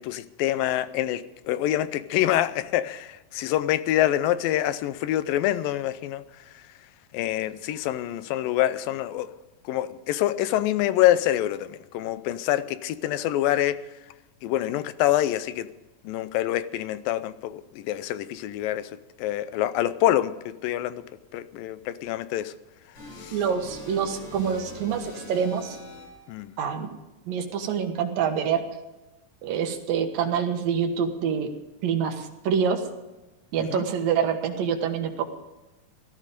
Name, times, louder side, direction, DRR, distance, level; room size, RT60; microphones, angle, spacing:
voice 1, 0.0-6.2 7.1-9.3 9.7-13.8 14.4-15.7 16.0-18.9 19.2-20.3 20.6-21.0 21.3-22.5 23.2-23.4 26.3-26.5 33.7-33.8, left 13 dB, 85° left, 2.4 m, -26 dB
sound 1, 22.9-26.4, left 2 dB, 50° left, 7.9 m, -42 dB
voice 2, 23.3-25.8 26.6-26.9 27.3-28.6 29.4-31.5 31.8-32.8 33.5-35.2, right 7 dB, 80° right, 3.2 m, -26 dB
16.5 x 13.5 x 5.2 m
omnidirectional pair, 4.0 m